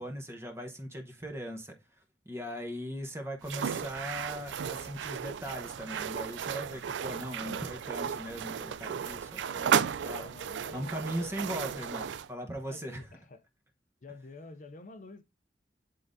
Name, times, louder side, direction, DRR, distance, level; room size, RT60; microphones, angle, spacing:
voice 1, 0.0-10.3 10.7-13.0, equal, 15° right, 1.0 m, -39 dB
sound 1, 3.4-12.3, right 7 dB, 80° right, 0.3 m, -34 dB
voice 2, 10.1-11.1 11.7-12.1 12.7-13.4 14.0-15.2, left 2 dB, 45° left, 0.5 m, -49 dB
10.0 x 3.7 x 2.6 m
head